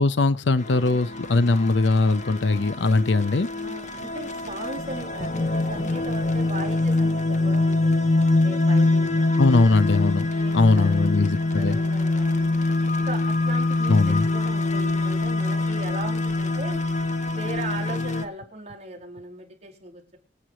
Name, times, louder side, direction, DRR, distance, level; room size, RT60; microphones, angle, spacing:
voice 1, 0.0-3.5 9.4-10.3 10.5-11.8 13.9-14.3, left 3 dB, 65° left, 0.7 m, -20 dB
sound 1, 0.6-18.3, left 2 dB, 40° left, 1.3 m, -24 dB
voice 2, 3.6-9.6 10.1-12.6 13.1-16.8 17.2-20.2, right 1 dB, 35° right, 4.7 m, -38 dB
25.5 x 8.7 x 3.1 m
head